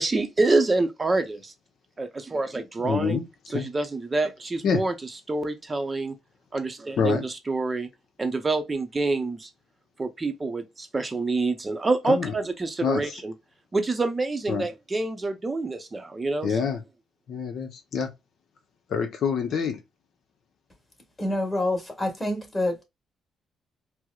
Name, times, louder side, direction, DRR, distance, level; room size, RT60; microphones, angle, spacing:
voice 1, 0.0-1.5 2.0-3.2 3.5-4.9 5.3-6.1 6.5-7.9 8.2-9.5 10.0-13.3 13.7-16.5, right 3 dB, 25° right, 0.6 m, -27 dB
voice 2, 2.8-3.2 3.5-3.6 4.6-4.8 7.0-7.2 12.1-12.3 12.8-13.2 14.5-14.7 16.4-16.8 17.3-18.1 18.9-19.8, left 6 dB, 65° left, 0.7 m, -26 dB
voice 3, 21.2-22.8, left 1 dB, 15° left, 1.5 m, -27 dB
4.5 x 2.0 x 2.3 m
cardioid pair, 90°, 0 cm